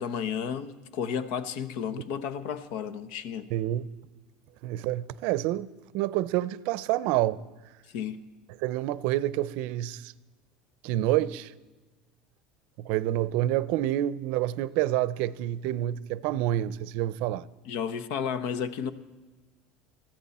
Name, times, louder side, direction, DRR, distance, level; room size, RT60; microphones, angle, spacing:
voice 1, 0.0-3.5 7.9-8.2 17.7-18.9, left 7 dB, 70° left, 1.0 m, -32 dB
voice 2, 3.5-3.9 4.6-5.7 5.9-7.4 8.6-10.1 10.8-11.5 12.8-17.4, right 14 dB, 65° right, 0.5 m, -28 dB
21.0 x 15.0 x 4.2 m
supercardioid pair, 140°, 3 cm